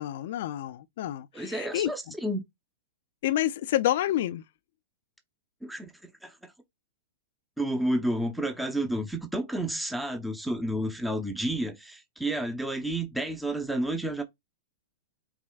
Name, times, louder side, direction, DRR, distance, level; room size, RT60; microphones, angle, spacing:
voice 1, 0.0-1.9 3.2-4.4, left 13 dB, 65° left, 0.4 m, -28 dB
voice 2, 1.3-2.5 5.6-6.5 7.6-14.2, right 1 dB, 5° right, 0.6 m, -31 dB
4.8 x 3.0 x 2.3 m
hypercardioid pair, 135°, 0 cm